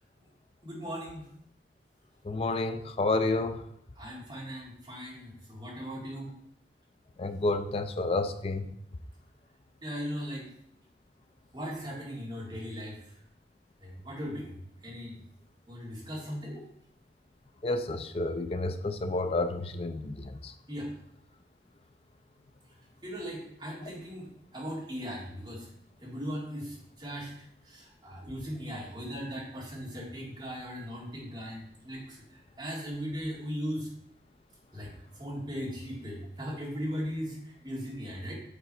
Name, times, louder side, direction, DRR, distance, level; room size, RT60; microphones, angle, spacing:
voice 1, 0.6-1.3 4.0-6.3 9.8-10.4 11.5-13.0 13.8-14.6 14.8-15.2 15.7-16.6 20.7-20.9 23.0-25.7 26.0-27.3 27.6-33.9 34.7-38.3, equal, 25° right, -5 dB, 2.1 m, -38 dB
voice 2, 2.3-3.6 7.2-8.7 17.6-20.5, left 2 dB, 35° left, 9 dB, 0.4 m, -30 dB
6.9 x 3.9 x 4.4 m, 0.72 s
head